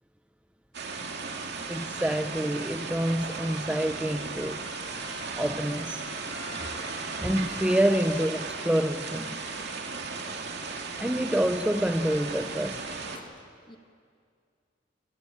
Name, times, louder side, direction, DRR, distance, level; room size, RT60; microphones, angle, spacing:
sound 1, 0.7-13.2, right 4 dB, 60° right, 2.4 m, -36 dB
voice 1, 1.7-4.6 5.4-6.0 7.2-9.4 11.0-12.8, right 1 dB, 5° right, 8 dB, 0.6 m, -27 dB
Trumpet, 2.9-10.5, left 4 dB, 65° left, 2.0 m, -49 dB
voice 2, 13.1-13.8, left 2 dB, 25° left, 6 dB, 1.5 m, -51 dB
27.5 x 18.5 x 8.9 m, 2.3 s
head